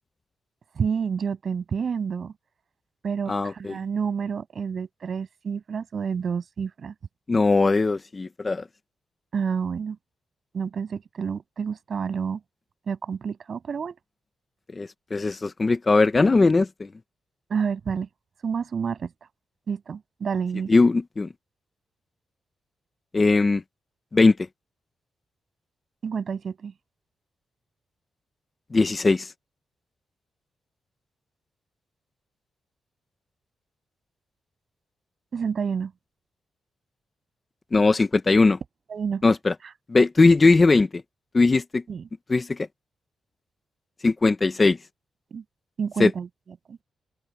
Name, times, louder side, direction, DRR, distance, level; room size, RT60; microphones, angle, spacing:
voice 1, 0.8-2.3 3.0-6.9 9.3-10.0 10.5-12.4 12.9-14.0 17.5-18.1 18.4-19.1 19.7-20.7 26.0-26.7 35.3-35.9 38.9-39.3 41.9-42.0 45.3-45.4 45.8-46.3 46.7-46.8, right 6 dB, 45° right, 7.2 m, -29 dB
voice 2, 3.3-3.7 7.3-8.6 14.8-16.9 20.7-21.3 23.1-23.6 24.1-24.4 28.7-29.3 37.7-38.6 39.2-39.5 39.9-41.0 41.3-41.8 42.3-42.6 44.0-44.8 46.0-46.1, left 3 dB, 25° left, 0.7 m, -19 dB
open air
wide cardioid pair, 165°, 0 cm